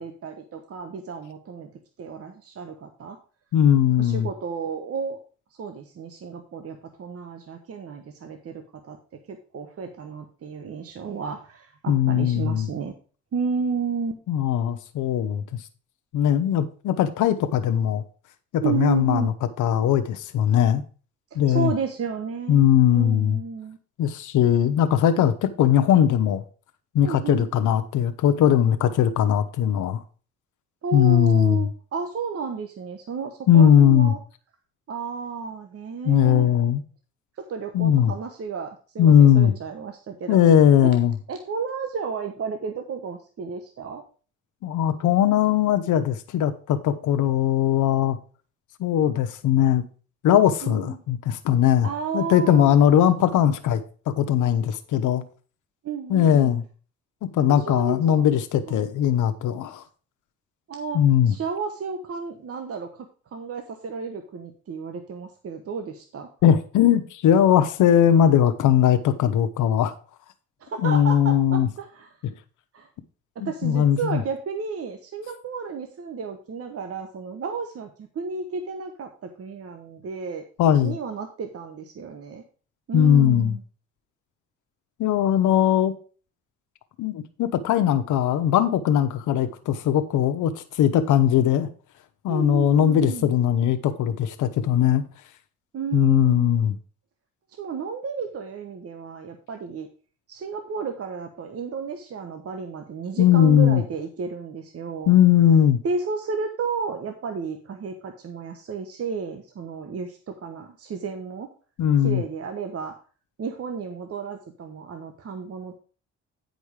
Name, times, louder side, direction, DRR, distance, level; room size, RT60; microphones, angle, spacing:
voice 1, 0.0-1.7 2.0-3.2 4.0-5.2 5.6-12.9 13.3-14.2 18.6-19.3 21.3-23.8 27.0-27.5 30.8-34.2 34.9-36.5 37.4-40.4 40.8-40.9 41.3-44.0 50.6-51.0 51.8-52.7 55.8-56.5 57.5-58.3 58.7-58.8 60.7-61.0 61.3-63.1 63.3-66.3 70.6-72.1 72.7-72.9 73.3-80.5 80.8-82.4 82.9-83.6 92.3-93.3 95.7-96.5 97.6-99.9 100.3-105.1 105.8-111.5 112.0-112.9 113.4-115.8, right 5 dB, 50° right, 1.1 m, -32 dB
voice 2, 3.5-4.3 11.9-12.7 14.3-15.4 16.1-18.0 18.5-19.3 19.6-20.8 21.3-21.7 22.5-23.4 24.0-26.4 26.9-30.0 30.9-31.7 33.5-34.1 36.1-36.8 37.7-38.1 39.0-39.5 40.3-41.1 44.6-48.2 48.8-49.8 50.2-55.2 56.1-56.6 57.3-59.8 60.9-61.3 66.4-69.9 70.8-71.7 73.4-74.2 80.6-81.0 82.9-83.5 85.0-85.9 87.0-91.7 92.2-95.0 95.9-96.7 103.2-103.8 105.1-105.8 111.8-112.2, left 10 dB, 80° left, 0.8 m, -19 dB
9.6 x 5.3 x 4.8 m
cardioid pair, 90°, 30 cm